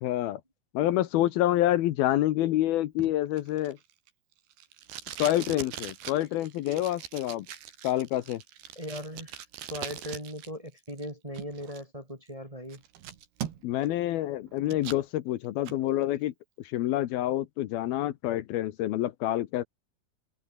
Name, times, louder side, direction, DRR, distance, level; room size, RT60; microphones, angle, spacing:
voice 1, 0.0-0.4 0.7-3.8 5.2-7.5 7.8-8.4 13.6-16.3 16.6-19.6, left 14 dB, 75° left, 2.8 m, -27 dB
Packing tape duct tape, 3.0-10.5 10.8-11.8 12.3-12.4 12.7-13.9 14.2-15.0 15.4-15.8, right 10 dB, 80° right, 4.2 m, -41 dB
voice 2, 8.7-9.3 9.7-12.8, equal, 10° right, 2.8 m, -39 dB
omnidirectional pair, 4.6 m